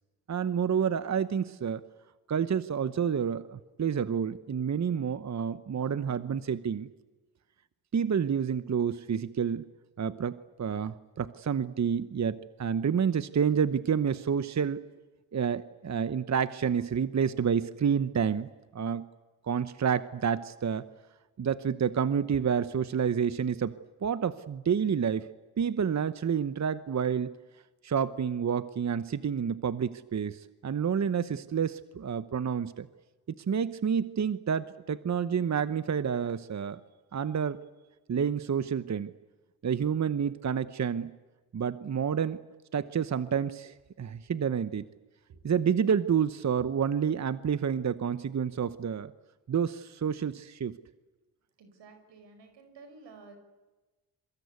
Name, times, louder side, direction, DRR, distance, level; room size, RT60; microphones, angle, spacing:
voice 1, 0.3-1.8 2.3-6.9 7.9-9.6 10.0-14.8 15.3-19.1 19.4-20.9 21.4-23.7 24.0-25.3 25.6-27.3 27.8-32.9 33.4-36.8 37.1-37.6 38.1-39.1 39.6-41.1 41.5-42.4 42.7-44.9 45.4-49.1 49.5-50.8, right 7 dB, 40° right, 13 dB, 1.0 m, -29 dB
voice 2, 51.6-53.4, right 4 dB, 80° right, 7 dB, 5.5 m, -52 dB
27.0 x 23.5 x 8.3 m, 1.2 s
cardioid pair, 85°, 42 cm